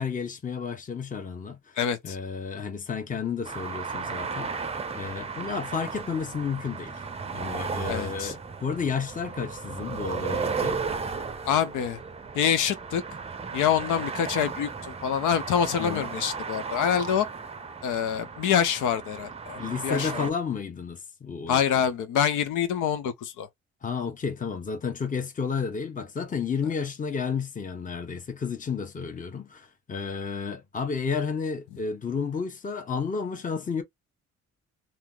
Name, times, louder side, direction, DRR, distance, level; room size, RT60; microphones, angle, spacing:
voice 1, 0.0-1.8 2.0-4.5 4.9-7.0 7.3-10.8 15.8-16.1 19.6-21.8 23.8-33.8, left 5 dB, 25° left, 0.9 m, -32 dB
voice 2, 1.8-2.2 7.9-8.3 11.4-12.0 12.3-13.0 13.5-17.3 17.8-20.3 21.5-23.5, left 8 dB, 80° left, 0.7 m, -26 dB
sound 1, 3.4-20.3, right 5 dB, 20° right, 0.6 m, -35 dB
2.8 x 2.0 x 3.7 m
cardioid pair, 90°, 30 cm